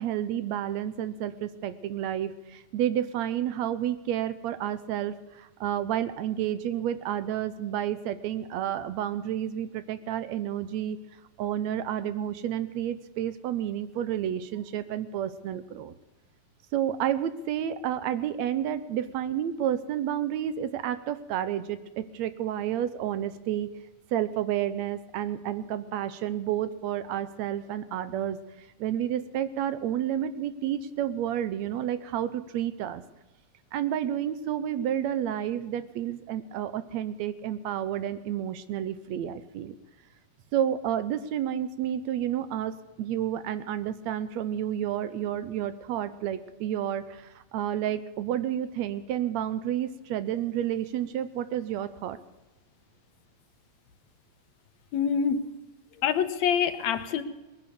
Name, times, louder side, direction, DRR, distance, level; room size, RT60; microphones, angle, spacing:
voice 1, 0.0-11.0 11.4-15.9 16.7-23.7 24.1-33.0 33.7-39.8 40.5-52.2, right 10 dB, 75° right, 13 dB, 2.0 m, -30 dB
voice 2, 54.9-55.4 56.0-57.2, left 7 dB, 75° left, 11 dB, 2.1 m, -25 dB
20.5 x 10.0 x 6.8 m, 1.1 s
omnidirectional pair, 3.3 m